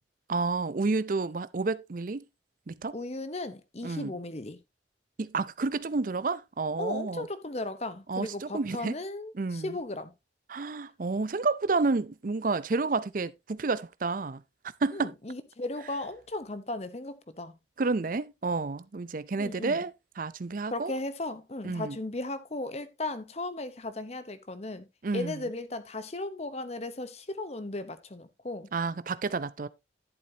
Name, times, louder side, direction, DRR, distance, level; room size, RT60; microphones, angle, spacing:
voice 1, 0.3-2.2 2.7-3.0 3.8-4.2 5.2-7.3 8.1-9.0 9.3-9.8 10.5-14.4 14.8-15.1 17.8-20.9 21.6-22.0 25.0-25.5 28.7-29.7, right 3 dB, 45° right, 0.5 m, -30 dB
voice 2, 2.9-4.6 6.8-10.1 14.9-17.5 19.4-19.8 20.7-24.9 25.1-28.7, left 2 dB, 35° left, 0.9 m, -36 dB
11.5 x 7.5 x 2.8 m
head